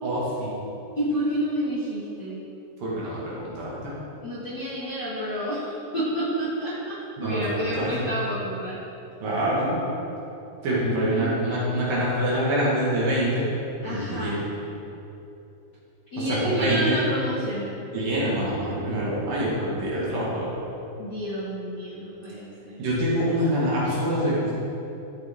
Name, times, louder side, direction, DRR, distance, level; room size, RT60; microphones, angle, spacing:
voice 1, 0.0-0.5 2.8-3.9 7.2-8.1 9.2-9.8 10.6-13.4 13.8-14.5 16.3-17.0 17.9-20.5 22.8-24.5, right 1 dB, 60° right, -7 dB, 3.2 m, -25 dB
voice 2, 1.0-2.4 4.2-6.9 7.2-8.8 10.8-12.0 13.8-14.4 16.1-17.7 21.0-22.8, equal, 50° left, -11 dB, 1.2 m, -29 dB
13.5 x 8.1 x 3.7 m, 2.9 s
omnidirectional pair, 5.1 m